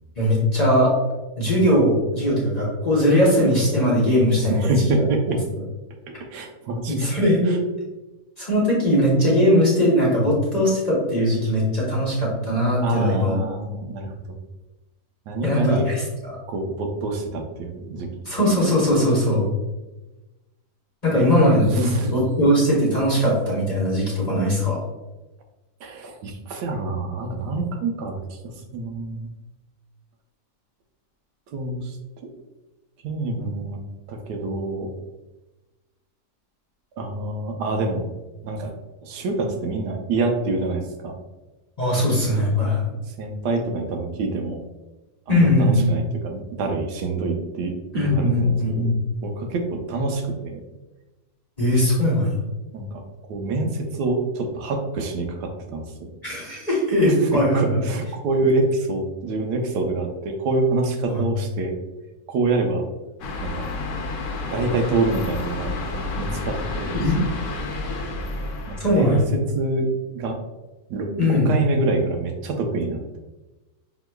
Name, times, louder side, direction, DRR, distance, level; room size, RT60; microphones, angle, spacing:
voice 1, 0.2-0.9 1.4-5.0 6.9-7.6 8.4-13.3 15.4-16.4 18.3-19.5 21.0-24.8 41.8-42.9 45.3-45.9 47.9-48.9 51.6-52.3 56.2-57.8 61.1-61.2 66.9-67.2 68.8-69.2 71.2-71.5, equal, 30° left, -6 dB, 0.9 m, -20 dB
voice 2, 4.5-5.4 6.3-7.1 7.5-7.6 12.8-14.4 15.3-15.9 16.5-18.1 21.1-22.1 25.8-29.3 31.5-32.0 33.0-33.8 34.1-34.9 37.0-38.0 38.4-38.7 39.0-41.1 42.1-42.3 43.2-44.6 45.3-48.9 49.2-50.6 52.7-53.0 53.3-56.1 57.1-61.8 62.3-62.9 63.4-63.6 64.5-66.9 68.7-69.9 70.1-70.4 70.9-73.0, right 3 dB, 85° right, 3 dB, 1.2 m, -26 dB
sound 1, 63.2-69.2, left 2 dB, 60° left, 0.9 m, -30 dB
5.8 x 3.0 x 2.2 m, 1.1 s
omnidirectional pair, 1.8 m